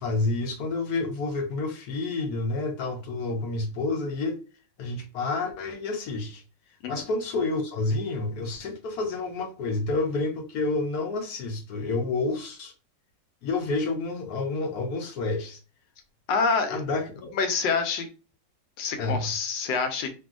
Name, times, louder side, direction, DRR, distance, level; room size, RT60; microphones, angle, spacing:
voice 1, 0.0-4.4 4.8-6.4 6.9-12.7 13.4-15.6 16.7-17.3 19.0-19.3, left 3 dB, 65° left, 1.0 m, -29 dB
voice 2, 16.3-16.8 17.3-18.1 18.8-20.1, left 5 dB, 85° left, 1.3 m, -26 dB
2.9 x 2.7 x 2.4 m
omnidirectional pair, 2.0 m